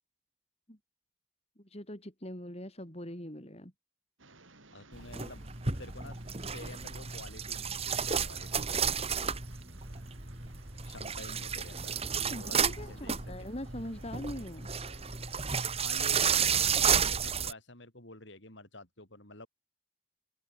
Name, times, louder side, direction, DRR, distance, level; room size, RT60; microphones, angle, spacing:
voice 1, 1.6-3.7 12.3-14.7, left 1 dB, 30° left, 4.9 m, -42 dB
sound 1, 4.2-15.9, right 2 dB, 75° right, 6.9 m, -57 dB
voice 2, 4.7-6.2 6.5-8.8 10.8-13.5 15.7-19.5, left 2 dB, 60° left, 7.4 m, -49 dB
sound 2, 4.9-17.5, right 7 dB, 30° right, 1.9 m, -32 dB
open air
head